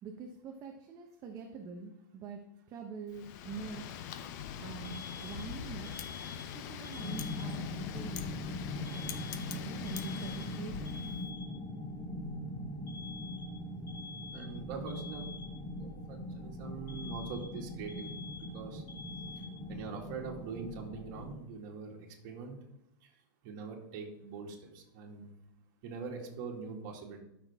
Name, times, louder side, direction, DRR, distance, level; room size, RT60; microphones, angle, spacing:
voice 1, 0.0-2.4 2.7-3.8 4.6-5.9 6.5-7.7 7.9-8.3 8.9-9.1 9.5-10.9, right 5 dB, 30° right, 3 dB, 1.0 m, -45 dB
Wind, 3.1-11.3, left 9 dB, 55° left, 0.9 m, -43 dB
Alarm, 4.8-7.8 8.9-11.8 12.9-15.8 16.9-19.9, left 5 dB, 85° left, 2.3 m, -49 dB
sound 1, 7.0-21.3, left 1 dB, 30° left, 3.4 m, -41 dB
voice 2, 14.3-15.3 15.8-18.8 19.4-19.5 19.7-22.6 23.0-23.1 23.4-25.3 25.8-27.2, right 5 dB, 50° right, -1 dB, 2.2 m, -43 dB
13.0 x 6.1 x 3.6 m, 0.83 s
supercardioid pair, 140°, 11 cm